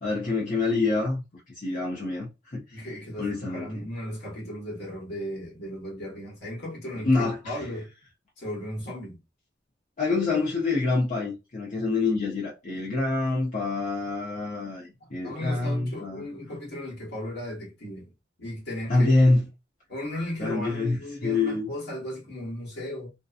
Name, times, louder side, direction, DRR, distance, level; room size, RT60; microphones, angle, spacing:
voice 1, 0.0-2.8 3.2-3.7 7.0-7.5 10.0-16.3 18.9-19.4 20.4-21.0 21.2-21.7, left 3 dB, 45° left, 0.8 m, -26 dB
voice 2, 2.7-7.9 8.4-9.2 15.0-18.1 18.4-19.3 19.9-23.1, left 1 dB, 65° left, 1.3 m, -36 dB
2.7 x 2.2 x 2.4 m
head